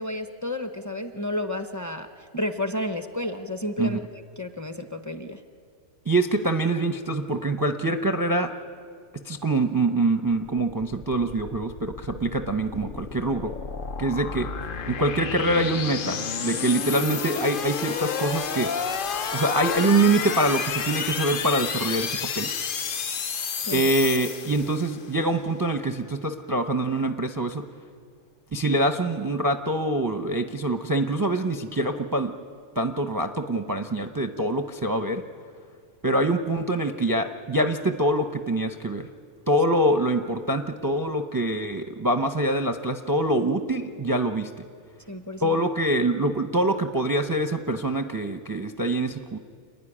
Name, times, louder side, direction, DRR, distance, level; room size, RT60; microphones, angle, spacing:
voice 1, 0.0-2.1 2.3-5.4 23.6-23.8 45.1-45.6, left 1 dB, 15° left, 7 dB, 0.7 m, -31 dB
voice 2, 6.1-8.5 9.3-13.5 14.0-14.5 14.9-18.7 19.3-22.5 23.7-27.6 28.5-32.3 32.8-35.2 36.0-39.1 39.5-44.5 45.4-49.4, right 1 dB, 25° right, 6 dB, 0.5 m, -25 dB
sound 1, 10.5-25.1, left 6 dB, 50° left, 0.8 m, -31 dB
28.5 x 11.0 x 10.0 m, 2.1 s
omnidirectional pair, 1.3 m